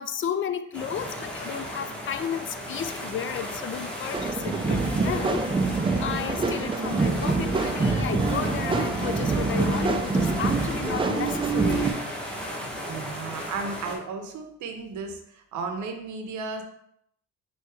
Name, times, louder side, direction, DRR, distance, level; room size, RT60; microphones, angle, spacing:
voice 1, 0.0-5.6 6.0-11.9, left 8 dB, 40° left, 11 dB, 0.4 m, -33 dB
sound 1, 0.7-14.0, equal, 5° left, 1.0 m, -35 dB
sound 2, 4.1-11.9, right 3 dB, 15° right, 0.4 m, -25 dB
voice 2, 12.4-16.6, right 4 dB, 70° right, 5 dB, 0.8 m, -35 dB
4.4 x 2.8 x 3.4 m, 0.73 s
cardioid pair, 90°, 30 cm